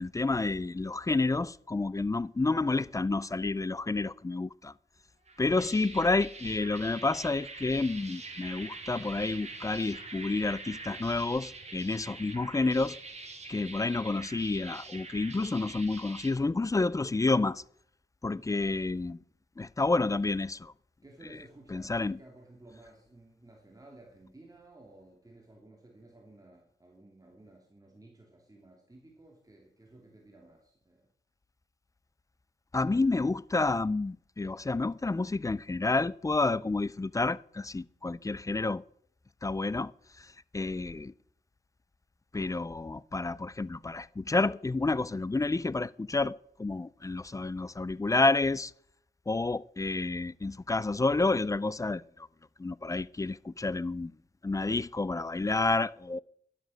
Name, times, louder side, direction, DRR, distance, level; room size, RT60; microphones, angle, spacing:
voice 1, 0.0-4.7 5.4-13.0 13.5-17.6 18.2-19.2 19.6-20.7 21.7-22.2 32.7-38.8 39.4-39.9 40.5-41.1 42.3-48.7 49.3-52.3 52.6-54.1 54.4-56.2, left 3 dB, 15° left, 0.4 m, -29 dB
sound 1, 5.3-16.3, right 3 dB, 35° right, 2.7 m, -45 dB
sound 2, 8.0-15.4, right 5 dB, 85° right, 3.7 m, -61 dB
voice 2, 21.0-31.1, right 2 dB, 20° right, 2.6 m, -55 dB
11.5 x 11.5 x 6.3 m
cardioid pair, 75°, 20 cm